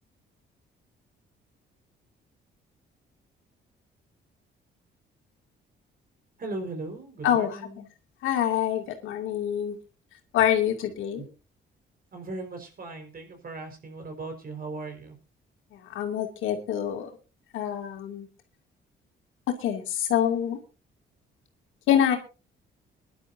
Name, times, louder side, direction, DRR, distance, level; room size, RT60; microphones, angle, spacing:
voice 1, 6.4-7.8 11.2-11.3 12.1-15.2, right 3 dB, 45° right, 5 dB, 4.9 m, -38 dB
voice 2, 7.2-7.6 8.2-9.8 10.3-11.3 15.7-17.1 17.5-18.3 19.5-20.6 21.9-22.2, left 10 dB, 90° left, 4 dB, 2.6 m, -26 dB
22.0 x 11.5 x 2.7 m, 0.31 s
cardioid pair, 90°, 20 cm